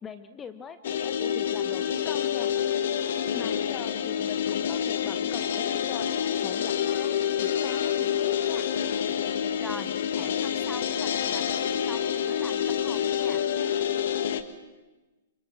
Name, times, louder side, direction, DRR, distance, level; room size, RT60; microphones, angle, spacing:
voice 1, 0.0-6.1 6.4-8.7, left 6 dB, 15° left, 10 dB, 1.1 m, -42 dB
sound 1, 0.8-14.4, left 9 dB, 55° left, 1.6 m, -27 dB
voice 2, 9.6-13.4, right 1 dB, 5° right, 11 dB, 1.3 m, -44 dB
28.0 x 26.0 x 6.1 m, 1.2 s
figure-of-eight pair, 110°, 0 cm